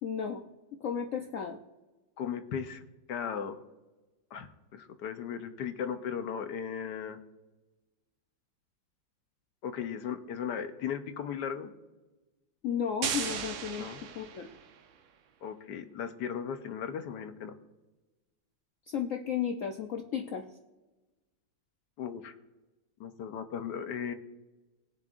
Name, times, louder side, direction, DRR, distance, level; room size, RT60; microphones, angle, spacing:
voice 1, 0.0-0.4 0.7-1.6 12.6-13.9 14.1-14.5 18.9-20.5, left 8 dB, 85° left, 4 dB, 0.7 m, -33 dB
voice 2, 2.2-2.8 3.1-3.6 4.3-7.2 9.6-11.7 13.8-14.0 15.4-17.5 22.0-22.3 23.0-24.1, left 7 dB, 65° left, 8 dB, 1.2 m, -36 dB
sound 1, 13.0-14.8, right 8 dB, 70° right, 1.5 m, -36 dB
20.0 x 7.2 x 2.5 m, 1.1 s
omnidirectional pair, 2.2 m